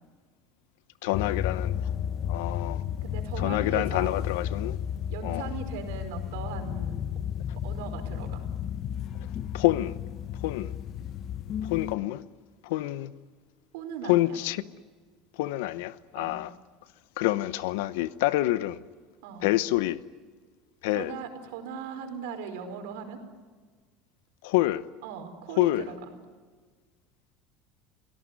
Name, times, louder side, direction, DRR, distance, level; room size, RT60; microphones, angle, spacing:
voice 1, 1.0-1.8 2.3-2.8 3.4-4.8 5.2-5.5 9.5-10.0 10.4-10.7 11.6-12.2 12.6-13.1 14.1-14.6 15.4-16.5 17.2-18.8 19.4-20.0 20.8-21.1 24.4-24.8 25.6-25.8, left 17 dB, 80° left, 0.9 m, -27 dB
sound 1, 1.1-12.0, left 9 dB, 45° left, 0.8 m, -33 dB
voice 2, 3.0-4.1 5.1-6.9 7.6-8.4 13.7-14.4 16.2-16.4 19.2-19.5 20.9-23.2 25.0-25.9, right 6 dB, 85° right, 4.9 m, -38 dB
29.0 x 17.5 x 9.6 m
supercardioid pair, 140°, 0 cm